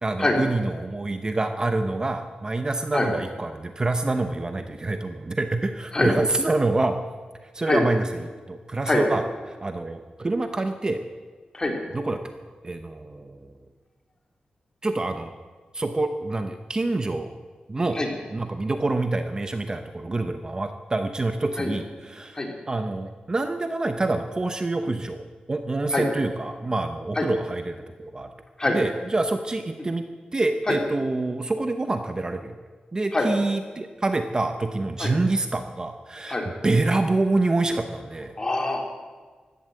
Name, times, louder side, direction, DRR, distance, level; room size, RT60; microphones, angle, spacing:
voice 1, 0.0-7.0 7.4-8.1 8.5-11.0 11.9-12.2 12.6-13.6 14.8-15.3 15.7-17.3 17.7-18.0 18.3-22.4 22.7-28.3 28.7-30.0 30.3-32.6 32.9-36.4 36.6-38.3, right 2 dB, 25° right, 7 dB, 0.9 m, -26 dB
voice 2, 38.4-38.9, left 2 dB, 25° left, 1 dB, 3.2 m, -24 dB
15.5 x 11.5 x 7.8 m, 1.4 s
wide cardioid pair, 105°, 3 cm